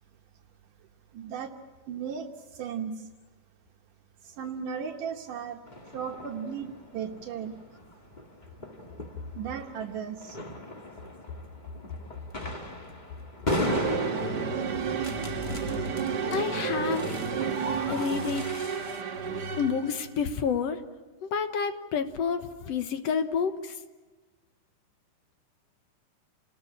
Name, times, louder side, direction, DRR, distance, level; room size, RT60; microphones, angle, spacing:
voice 1, 1.1-1.5 1.9-3.1 4.2-5.6 5.9-7.5 9.3-10.4, right 7 dB, 75° right, 2 dB, 2.7 m, -36 dB
sound 1, 5.7-19.0, left 1 dB, 20° left, 1.3 m, -38 dB
sound 2, 13.6-20.2, right 5 dB, 45° right, 1.4 m, -31 dB
voice 2, 16.3-17.2 17.9-18.5 19.6-20.8 21.2-23.8, left 6 dB, 60° left, 8 dB, 2.0 m, -29 dB
29.0 x 20.5 x 10.0 m, 1.3 s
omnidirectional pair, 3.8 m